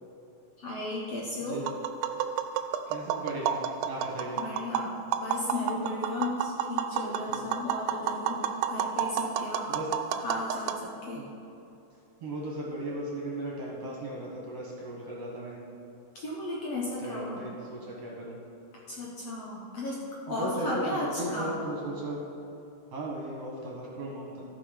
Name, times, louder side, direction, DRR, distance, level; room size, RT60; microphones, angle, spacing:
voice 1, 0.6-1.6 4.4-9.7 10.2-11.2 16.2-17.4 18.9-20.0 20.3-21.5, left 2 dB, 60° left, -4 dB, 1.8 m, -35 dB
Tap, 1.6-10.8, right 8 dB, 90° right, 2.3 m, -31 dB
voice 2, 2.9-3.6 3.8-4.4 7.3-7.4 9.7-9.9 11.2-11.3 12.2-15.6 17.0-18.4 20.3-20.8 21.2-22.2 22.9-24.4, right 1 dB, 55° right, -3 dB, 2.2 m, -36 dB
14.0 x 5.8 x 5.1 m, 2.8 s
omnidirectional pair, 4.0 m